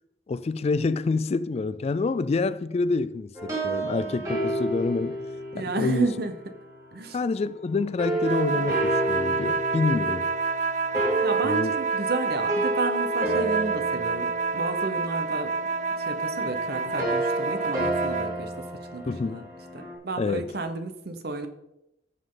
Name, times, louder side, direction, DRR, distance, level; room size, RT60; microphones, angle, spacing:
voice 1, 0.3-5.2 5.6-6.1 7.1-10.3 11.4-11.7 19.1-19.5 20.2-20.5, left 3 dB, 35° left, 0.3 m, -27 dB
sound 1, 3.3-6.7 8.0-19.9, right 2 dB, 20° right, 2.5 m, -31 dB
voice 2, 5.5-6.3 6.9-7.2 11.2-15.5 16.0-18.7 18.9-19.4 19.7-21.5, right 2 dB, 60° right, 1.0 m, -32 dB
sound 2, 8.2-18.4, right 4 dB, 45° right, 0.7 m, -28 dB
14.0 x 5.5 x 3.9 m
head